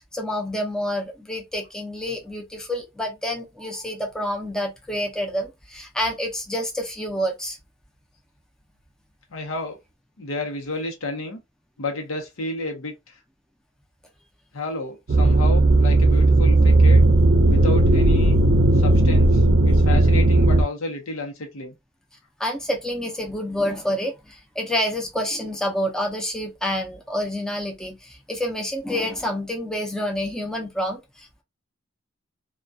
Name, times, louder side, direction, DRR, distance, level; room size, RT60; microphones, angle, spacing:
voice 1, 0.1-7.6 22.4-31.4, equal, 5° left, 0.5 m, -28 dB
voice 2, 9.3-9.8 10.2-11.4 11.8-13.2 14.5-17.0 17.5-18.4 18.7-21.7, left 2 dB, 90° left, 0.7 m, -31 dB
sound 1, 15.1-20.6, right 2 dB, 50° right, 0.5 m, -16 dB
2.3 x 2.2 x 2.6 m
head